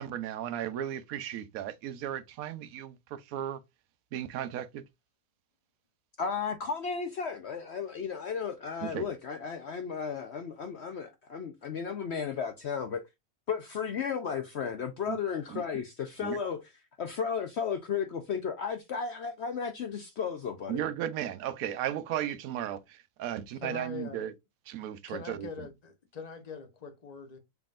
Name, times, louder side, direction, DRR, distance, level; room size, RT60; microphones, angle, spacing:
voice 1, 0.0-3.6 4.1-4.8 8.8-9.1 15.1-15.2 15.5-15.6 16.2-16.4 20.7-24.3 24.7-25.7, right 11 dB, 70° right, 1.0 m, -35 dB
voice 2, 6.2-13.0 13.5-16.6 17.0-20.8, left 6 dB, 60° left, 0.7 m, -34 dB
voice 3, 23.6-24.2 25.1-27.4, left 5 dB, 30° left, 0.9 m, -42 dB
5.7 x 3.8 x 2.4 m
omnidirectional pair, 1.7 m